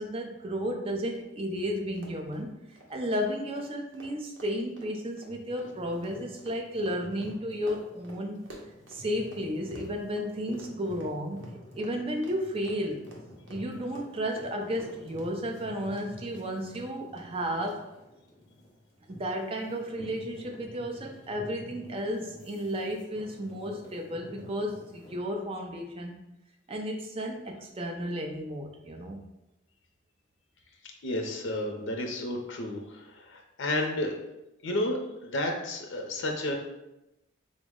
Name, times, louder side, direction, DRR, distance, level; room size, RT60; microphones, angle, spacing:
voice 1, 0.0-8.4 8.9-11.5 11.7-13.0 13.5-17.9 19.1-26.1 26.7-29.2, equal, 30° right, 2 dB, 0.4 m, -33 dB
Run, 1.1-1.2 1.5-1.6 1.9-9.4 9.7-16.1 16.3-16.8 17.2-17.3 17.7-17.8, right 1 dB, 70° right, 0.7 m, -51 dB
sound 1, 5.3-25.2, left 1 dB, 20° left, 0.8 m, -50 dB
voice 2, 31.0-34.1 34.6-36.5, left 1 dB, 75° left, 3 dB, 0.5 m, -31 dB
3.9 x 2.0 x 3.5 m, 0.92 s
head